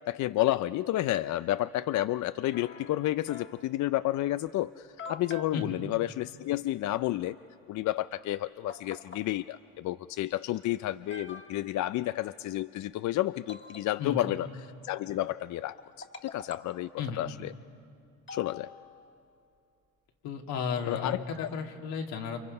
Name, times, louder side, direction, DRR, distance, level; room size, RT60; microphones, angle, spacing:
voice 1, 0.1-7.4 7.7-17.5 18.3-18.7 20.9-21.5, left 15 dB, 55° left, 14 dB, 0.5 m, -31 dB
sound 1, 2.5-3.7 4.5-4.6 5.0-5.6 8.1-8.2 8.7-9.3 10.3-10.4 11.0-11.8 13.5-14.3 15.8-16.8 18.3-19.2, left 4 dB, 30° left, 1.7 m, -46 dB
voice 2, 20.2-22.4, left 6 dB, 80° left, 2 dB, 2.6 m, -34 dB
29.5 x 26.5 x 5.4 m, 2.6 s
cardioid pair, 105°, 36 cm